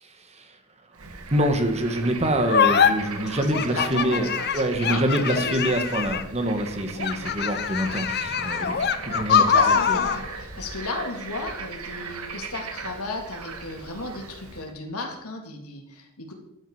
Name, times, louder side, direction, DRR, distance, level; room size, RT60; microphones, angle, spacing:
voice 1, 0.0-0.6 1.3-10.0, right 1 dB, 30° right, 6 dB, 1.8 m, -26 dB
Bird / Frog, 0.9-14.7, right 4 dB, 80° right, 2.0 m, -38 dB
sound 1, 2.5-2.9 3.5-6.4 7.0-10.2, left 7 dB, 45° left, 1.0 m, -23 dB
voice 2, 3.5-5.7 9.3-16.3, left 3 dB, 85° left, 2 dB, 3.3 m, -34 dB
15.0 x 12.0 x 5.1 m, 0.85 s
head